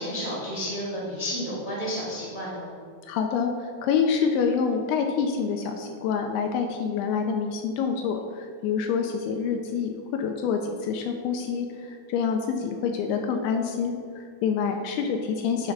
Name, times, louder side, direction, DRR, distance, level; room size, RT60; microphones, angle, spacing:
voice 1, 0.0-2.7, equal, 30° right, -7 dB, 0.8 m, -31 dB
voice 2, 3.1-15.7, left 6 dB, 80° left, 4 dB, 2.4 m, -27 dB
9.6 x 3.7 x 5.8 m, 2.1 s
omnidirectional pair, 4.8 m